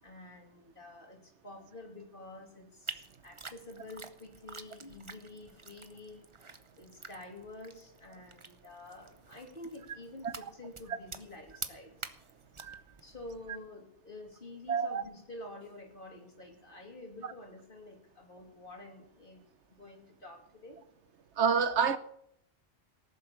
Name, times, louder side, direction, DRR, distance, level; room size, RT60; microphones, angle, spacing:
voice 1, 0.0-6.2 6.8-12.2 13.0-19.4 19.7-20.8, left 2 dB, 45° left, 3.2 m, -49 dB
sound 1, 2.9-13.7, right 4 dB, 30° right, 0.8 m, -48 dB
voice 2, 14.7-15.0 21.4-22.0, right 6 dB, 70° right, 1.1 m, -28 dB
18.0 x 7.6 x 7.0 m
omnidirectional pair, 1.2 m